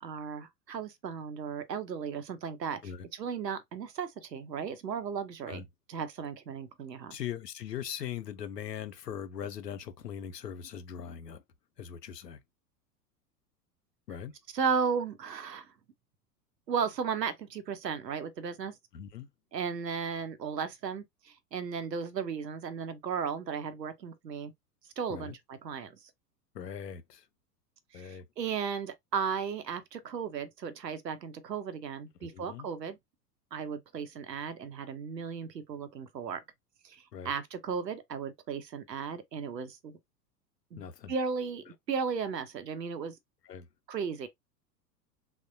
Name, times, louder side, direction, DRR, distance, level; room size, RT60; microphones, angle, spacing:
voice 1, 0.0-2.8 3.1-5.6 5.9-7.2 14.5-15.7 16.7-18.7 19.5-24.5 25.0-25.9 27.9-33.0 33.5-36.4 36.8-40.0 40.7-43.2 43.9-44.3, right 6 dB, 80° right, 0.7 m, -35 dB
voice 2, 7.1-11.4 11.8-12.4 14.1-14.3 18.9-19.3 25.1-25.3 26.5-27.2 27.9-28.3 32.2-32.7 37.1-37.3 40.8-41.1 41.7-41.8 43.5-43.7, left 9 dB, 80° left, 0.6 m, -40 dB
3.5 x 2.1 x 2.6 m
figure-of-eight pair, 90°, 49 cm